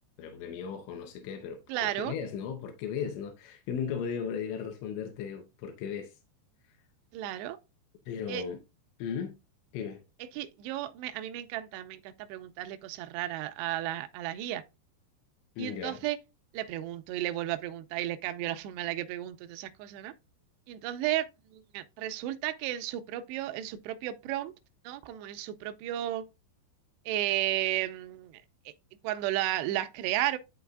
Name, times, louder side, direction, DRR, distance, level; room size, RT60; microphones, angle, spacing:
voice 1, 0.2-6.2 8.1-8.6 9.0-9.3 9.7-10.0 15.6-16.0, left 7 dB, 85° left, 3.2 m, -36 dB
voice 2, 1.7-2.1 7.1-7.6 8.3-8.4 10.3-14.6 15.6-16.2 16.5-20.1 20.7-24.5 24.9-26.2 27.1-28.3 28.7-28.8 29.0-30.4, right 14 dB, 85° right, 2.6 m, -33 dB
11.5 x 3.9 x 2.3 m
omnidirectional pair, 5.2 m